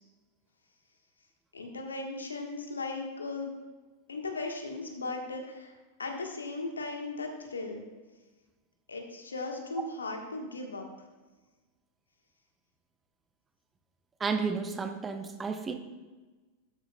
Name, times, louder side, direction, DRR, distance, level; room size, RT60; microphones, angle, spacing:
voice 1, 1.5-3.5 4.1-5.7 6.0-7.8 8.9-10.9, left 3 dB, 75° left, 3 dB, 1.3 m, -37 dB
voice 2, 14.2-15.7, right 5 dB, 15° right, 7 dB, 0.8 m, -32 dB
12.5 x 8.7 x 2.3 m, 1.2 s
figure-of-eight pair, 90°, 0 cm